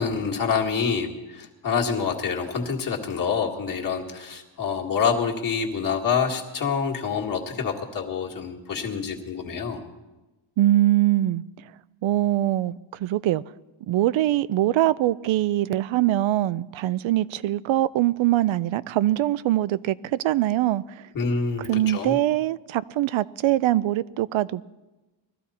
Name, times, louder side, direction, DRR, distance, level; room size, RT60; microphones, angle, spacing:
voice 1, 0.0-9.8 21.1-22.2, left 6 dB, 45° left, 0 dB, 1.9 m, -27 dB
voice 2, 10.6-11.4 12.0-12.7 13.0-13.4 13.9-20.8 21.7-24.6, right 14 dB, 75° right, 17 dB, 0.5 m, -22 dB
20.5 x 14.0 x 4.2 m, 1.1 s
wide cardioid pair, 175°, 47 cm